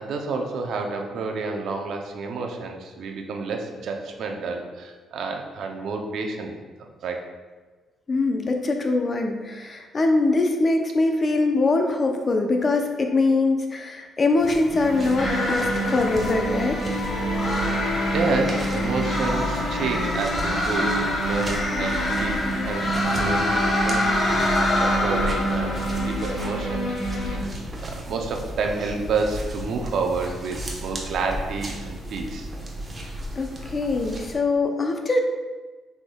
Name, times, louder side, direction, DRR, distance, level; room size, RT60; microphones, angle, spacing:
voice 1, 0.0-6.5 6.8-7.2 17.4-17.7 18.1-26.8 27.2-27.5 27.8-32.5, right 4 dB, 70° right, 3 dB, 0.6 m, -29 dB
voice 2, 8.1-16.9 33.4-35.2, left 3 dB, 35° left, 4 dB, 0.6 m, -23 dB
sound 1, 14.4-34.3, equal, 30° right, 1.0 m, -37 dB
sound 2, 14.7-27.4, right 1 dB, 90° left, 1.1 m, -28 dB
sound 3, 15.2-34.2, left 1 dB, 60° left, 1.2 m, -28 dB
6.3 x 3.5 x 2.3 m, 1.3 s
cardioid pair, 90°, 0 cm